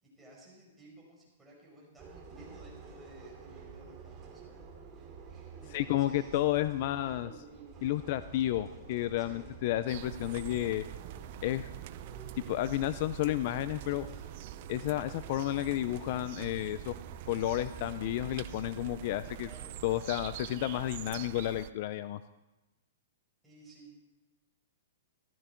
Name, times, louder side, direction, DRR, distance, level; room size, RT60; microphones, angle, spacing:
voice 1, 0.0-4.6 5.6-6.4 9.2-9.5 19.4-19.7 23.4-23.9, right 1 dB, 5° right, -4 dB, 5.0 m, -55 dB
sound 1, 2.0-20.0, right 5 dB, 20° right, 2.4 m, -50 dB
voice 2, 5.7-7.4 7.8-10.8 11.4-11.7 12.5-14.1 14.7-16.9 17.3-19.5 19.8-22.2, left 14 dB, 45° left, 14 dB, 0.5 m, -31 dB
sound 2, 9.9-21.7, right 14 dB, 45° right, 0.5 m, -45 dB
15.0 x 13.0 x 4.5 m, 1.0 s
hypercardioid pair, 150°, 0 cm